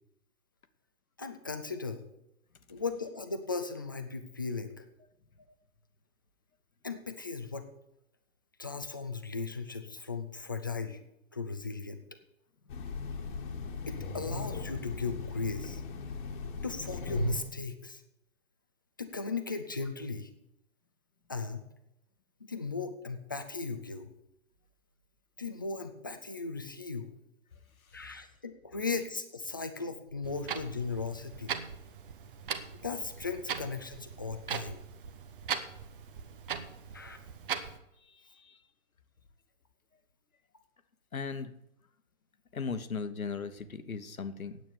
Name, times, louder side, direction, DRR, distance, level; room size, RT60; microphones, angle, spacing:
voice 1, 1.2-2.0 2.7-4.9 6.8-7.7 8.6-11.0 11.3-12.0 13.9-15.8 16.6-18.0 19.0-20.3 21.3-21.6 22.5-24.1 25.4-27.1 27.9-31.6 32.8-34.8 36.9-37.2, left 4 dB, 15° left, 8 dB, 0.4 m, -37 dB
Train, 12.7-17.6, left 2 dB, 35° left, 1.5 m, -37 dB
Clock, 30.2-37.8, right 7 dB, 40° right, 1.0 m, -40 dB
voice 2, 38.0-38.6 41.1-41.5 42.5-44.6, left 5 dB, 80° left, 11 dB, 1.2 m, -38 dB
9.4 x 8.4 x 7.0 m, 0.82 s
figure-of-eight pair, 130°, 41 cm